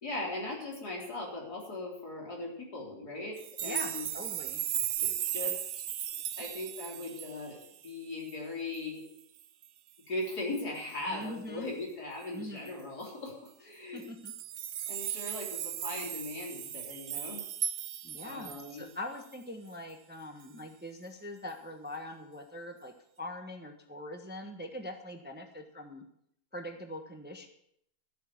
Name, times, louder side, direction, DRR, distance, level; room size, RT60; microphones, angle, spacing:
voice 1, 0.0-4.1 5.0-5.6 6.4-9.0 10.1-14.0 14.9-17.5 18.2-18.9, left 2 dB, 75° left, -2 dB, 4.2 m, -39 dB
sound 1, 3.4-7.9 8.3-8.4 8.7-8.8 9.2-9.7 10.8-11.0 12.7-12.8 13.0-13.1 14.0-18.8 19.3-19.4, right 11 dB, 65° right, 0.8 m, -36 dB
voice 2, 3.6-4.6 11.1-11.7 12.3-12.7 13.9-14.3 18.0-22.9 23.2-26.0 26.5-27.5, left 1 dB, 5° right, 5 dB, 1.0 m, -42 dB
13.5 x 8.5 x 7.1 m, 0.72 s
omnidirectional pair, 1.7 m